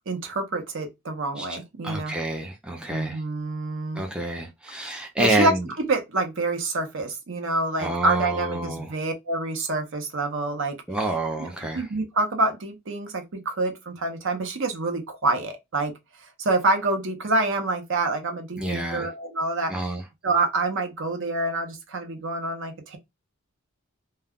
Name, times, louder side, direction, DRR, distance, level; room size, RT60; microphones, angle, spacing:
voice 1, 0.1-2.1 2.9-4.0 5.2-5.5 5.9-10.8 11.7-15.9 16.4-19.7 20.2-23.0, right 2 dB, 60° right, 0.7 m, -27 dB
voice 2, 1.8-3.2 3.9-5.7 7.8-8.9 10.9-11.9 18.5-19.1 19.7-20.0, right 1 dB, 5° right, 0.4 m, -28 dB
2.3 x 2.2 x 3.5 m
head